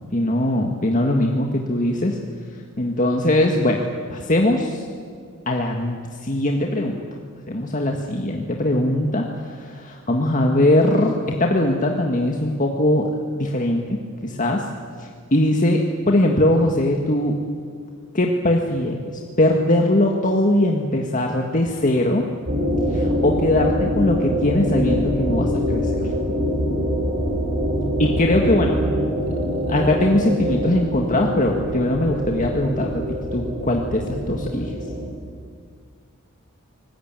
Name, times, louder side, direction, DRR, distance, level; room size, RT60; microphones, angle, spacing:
voice 1, 0.1-2.2 2.8-3.8 4.1-4.8 5.4-7.0 7.5-13.1 13.3-14.6 15.0-17.4 18.1-22.2 22.9-25.9 28.0-29.1 29.7-33.0 33.3-34.8, left 1 dB, 35° left, 1 dB, 1.7 m, -21 dB
sound 1, 22.5-35.1, equal, 50° right, 7.5 m, -24 dB
24.5 x 20.0 x 9.0 m, 2.1 s
head